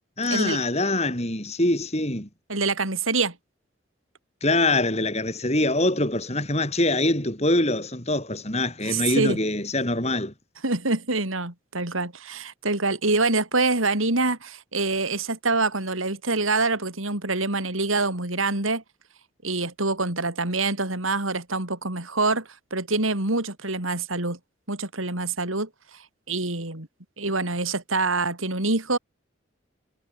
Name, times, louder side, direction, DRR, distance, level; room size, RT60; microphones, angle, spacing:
voice 1, 0.2-2.3 4.4-10.3, left 2 dB, 30° left, 6.4 m, -24 dB
voice 2, 2.5-3.3 8.8-9.4 10.6-18.8 19.4-24.4 24.7-25.7 26.3-26.9 27.2-29.0, right 3 dB, 90° right, 4.8 m, -25 dB
head